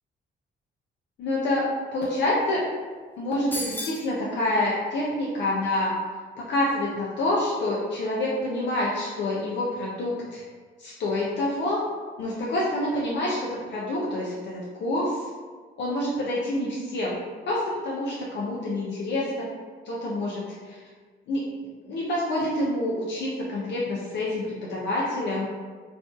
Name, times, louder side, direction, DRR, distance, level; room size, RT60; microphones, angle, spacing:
voice 1, 1.2-1.7 1.9-2.6 3.2-5.9 6.4-10.4 10.8-11.8 12.2-15.2 15.8-17.2 17.5-19.4 19.9-20.8 21.3-21.5 21.8-25.5, left 1 dB, 65° left, -5 dB, 0.5 m, -27 dB
sound 1, 3.5-4.1, left 1 dB, 10° left, 0.4 m, -32 dB
2.5 x 2.2 x 2.5 m, 1.5 s
cardioid pair, 90°, 20 cm